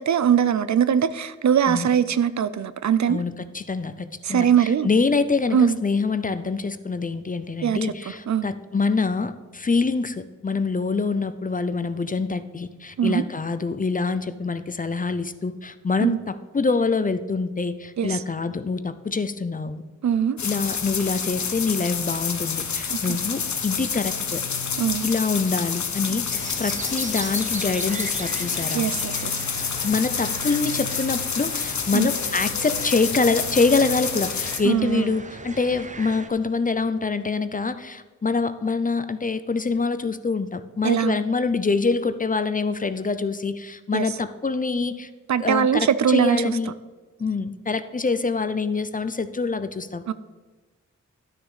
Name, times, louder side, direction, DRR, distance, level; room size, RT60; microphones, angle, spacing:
voice 1, 0.0-3.2 4.2-4.9 5.5-5.8 7.6-7.9 8.3-8.5 13.0-13.3 16.0-16.2 18.0-18.2 20.0-20.4 22.9-23.0 24.8-25.1 28.7-29.4 31.9-32.1 34.6-35.1 40.8-41.2 43.9-44.1 45.3-46.5 50.1-50.2, right 8 dB, 65° right, 15 dB, 0.5 m, -21 dB
voice 2, 3.1-19.8 20.4-24.4 25.0-28.9 29.8-45.1 45.4-46.7 47.2-50.1, left 4 dB, 25° left, 12 dB, 0.5 m, -25 dB
sound 1, 20.4-34.6, left 6 dB, 65° left, 1.0 m, -28 dB
sound 2, 26.3-36.3, right 3 dB, 25° right, 0.7 m, -38 dB
11.5 x 6.2 x 4.9 m, 1.3 s
wide cardioid pair, 75°, 31 cm